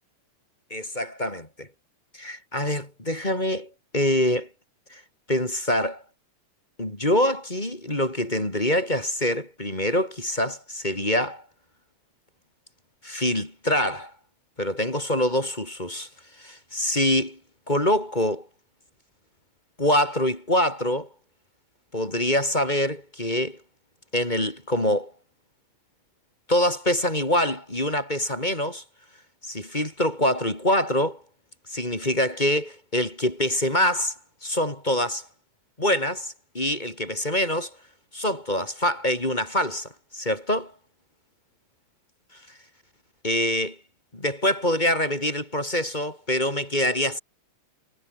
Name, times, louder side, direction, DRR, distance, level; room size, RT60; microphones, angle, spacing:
voice 1, 0.7-1.7 2.1-4.5 4.9-5.0 5.3-6.0 6.8-11.4 13.0-14.1 14.6-16.1 16.4-17.4 17.7-18.5 19.8-21.1 21.9-23.6 24.1-25.1 26.5-28.8 29.4-31.2 31.7-35.3 35.8-37.8 38.1-40.7 42.3-42.4 43.2-43.8 44.1-47.2, left 1 dB, 15° left, 4.2 m, -25 dB
omnidirectional pair, 3.3 m